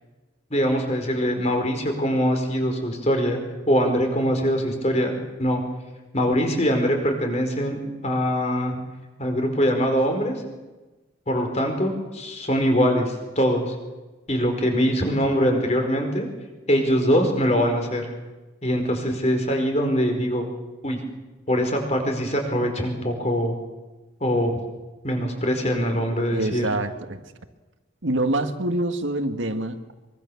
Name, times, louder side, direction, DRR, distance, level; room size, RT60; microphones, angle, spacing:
voice 1, 0.5-3.4 3.7-5.1 5.4-5.6 6.1-7.8 8.0-8.7 9.2-10.4 11.3-13.7 14.3-16.3 16.7-18.1 18.6-20.5 20.8-21.0 21.5-23.5 24.2-24.5 25.0-26.6, equal, 35° left, 4 dB, 4.9 m, -23 dB
voice 2, 26.3-27.2 28.0-29.8, right 1 dB, 75° right, 7 dB, 1.9 m, -25 dB
24.0 x 24.0 x 7.2 m, 1.2 s
head